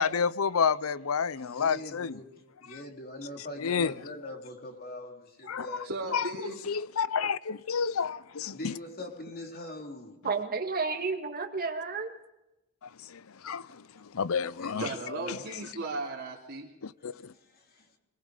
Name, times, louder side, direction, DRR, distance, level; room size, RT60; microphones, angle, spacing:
voice 1, 0.0-2.1 3.6-3.9 5.5-5.7 6.1-6.2 6.7-8.6 13.1-13.6 14.1-14.8 16.8-17.1, left 6 dB, 75° left, 0.6 m, -29 dB
voice 2, 1.4-2.3 2.6-5.9 8.5-10.2 13.9-14.0 14.6-15.4 17.0-18.0, left 2 dB, 45° left, 3.3 m, -43 dB
voice 3, 5.8-6.6 14.7-16.7, right 2 dB, 60° right, 2.9 m, -36 dB
voice 4, 10.2-12.1, right 4 dB, 45° right, 2.1 m, -31 dB
24.0 x 21.0 x 5.1 m
head